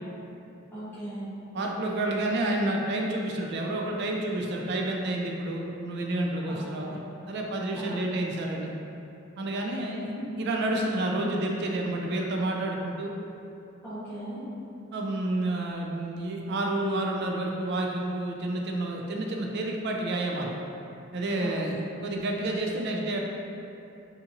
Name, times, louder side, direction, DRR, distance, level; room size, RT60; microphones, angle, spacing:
voice 1, 0.7-1.3 6.5-7.0 7.7-8.0 9.9-10.2 13.8-14.4 21.4-21.8, right 1 dB, 10° left, -14 dB, 0.8 m, -39 dB
voice 2, 1.5-7.0 7.3-8.7 9.4-10.1 10.4-13.1 14.9-20.6 21.1-23.2, right 1 dB, 55° right, 0 dB, 0.3 m, -29 dB
2.8 x 2.5 x 2.5 m, 2.8 s
head